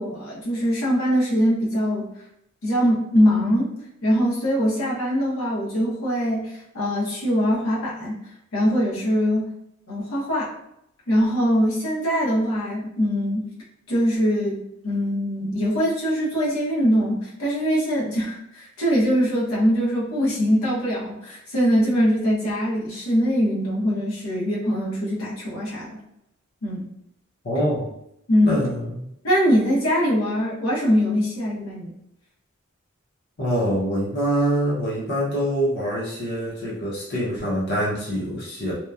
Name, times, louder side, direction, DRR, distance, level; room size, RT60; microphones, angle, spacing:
voice 1, 0.0-2.1 2.6-3.7 4.0-8.2 8.5-9.5 9.9-10.5 11.1-13.5 13.9-26.0 26.6-26.9 28.3-28.6 29.2-31.9, equal, 85° left, -6 dB, 0.9 m, -22 dB
voice 2, 27.4-27.9 28.4-29.0 33.4-38.7, equal, 55° left, -6 dB, 0.7 m, -25 dB
2.8 x 2.1 x 2.3 m, 0.80 s
head